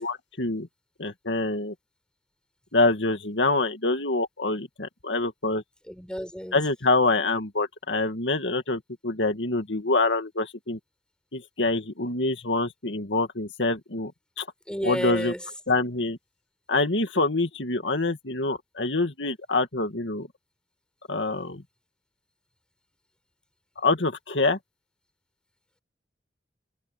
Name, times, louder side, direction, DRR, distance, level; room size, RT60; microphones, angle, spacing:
voice 1, 0.0-0.7 1.0-1.7 2.7-5.6 6.5-10.8 11.3-14.1 14.4-14.5 14.8-15.3 15.7-16.2 16.7-20.3 21.1-21.6 23.8-24.6, left 2 dB, 75° left, 2.3 m, -26 dB
voice 2, 5.9-6.6 14.7-15.4, equal, 5° left, 7.0 m, -31 dB
head